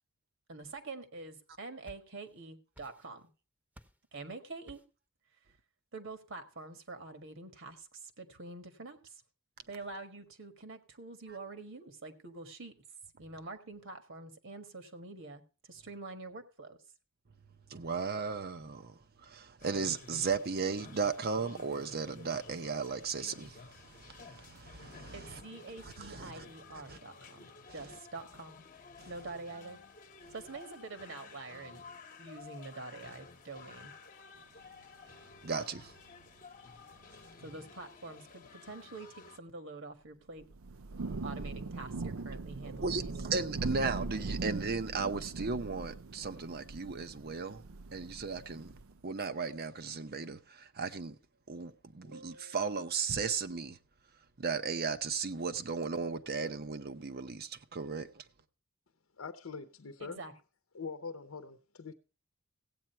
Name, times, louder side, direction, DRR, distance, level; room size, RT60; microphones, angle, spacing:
voice 1, 0.5-3.2 4.1-4.8 5.9-9.2 9.7-12.8 13.2-16.8 25.1-28.6 29.1-29.8 30.3-31.8 32.2-33.9 37.4-40.5 41.2-43.4 52.0-52.6 60.0-60.3, right 3 dB, 65° right, 1.6 m, -46 dB
sound 1, 1.5-2.4 2.7-3.3 3.7-4.1 4.7-5.1, equal, 5° right, 0.9 m, -58 dB
voice 2, 17.7-25.4 25.8-26.4 26.9-27.0 29.0-29.1 35.4-35.9 42.8-47.6 47.9-48.7 49.0-51.2 51.5-53.8 54.4-58.2, right 5 dB, 50° right, 0.8 m, -36 dB
sound 2, 19.6-39.4, left 4 dB, 40° left, 1.1 m, -53 dB
Thunder / Rain, 40.4-49.0, right 3 dB, 80° right, 0.6 m, -40 dB
voice 3, 59.2-60.2 60.7-61.9, left 4 dB, 75° left, 0.8 m, -43 dB
15.5 x 8.7 x 4.4 m
head